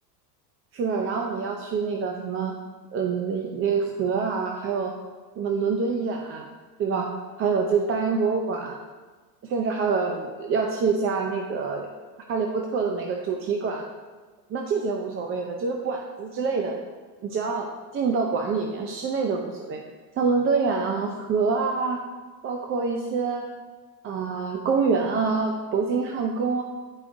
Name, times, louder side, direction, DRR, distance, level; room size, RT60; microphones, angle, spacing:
voice 1, 0.7-2.5 2.9-4.9 5.4-6.5 6.8-7.1 7.4-8.8 9.4-11.9 12.3-13.9 14.5-16.8 17.2-17.7 17.9-19.8 20.2-22.0 22.4-23.5 24.0-26.6, right 5 dB, 25° right, 2 dB, 0.5 m, -26 dB
10.5 x 4.8 x 2.6 m, 1.4 s
supercardioid pair, 115°, 49 cm